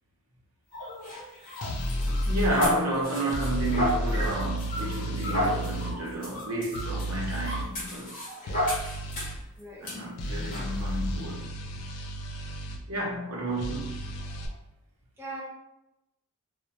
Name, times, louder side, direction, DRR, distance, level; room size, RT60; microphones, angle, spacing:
sound 1, 0.7-9.4 9.8-10.0 10.5-10.7, equal, 35° left, 0.7 m, -33 dB
sound 2, 1.6-2.5 3.3-6.0 6.8-7.7 8.5-9.4 10.2-12.8 13.6-14.5, equal, 85° left, 0.4 m, -32 dB
voice 1, 2.3-8.3 9.8-11.5 12.9-14.5, right 1 dB, 75° right, 0.7 m, -31 dB
voice 2, 9.6-10.0 15.2-15.4, right 2 dB, 10° right, 0.6 m, -40 dB
2.2 x 2.1 x 2.7 m
head